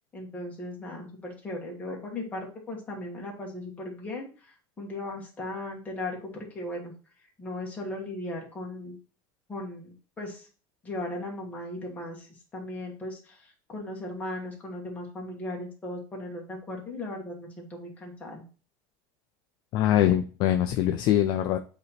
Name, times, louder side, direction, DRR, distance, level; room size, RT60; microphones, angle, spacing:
voice 1, 0.1-6.9 7.4-9.0 9.5-10.5 10.8-12.3 12.5-18.4, left 1 dB, 15° left, -1 dB, 1.5 m, -37 dB
voice 2, 19.7-21.6, left 12 dB, 40° left, 7 dB, 0.4 m, -23 dB
7.7 x 2.9 x 4.2 m, 0.37 s
supercardioid pair, 170°, 12 cm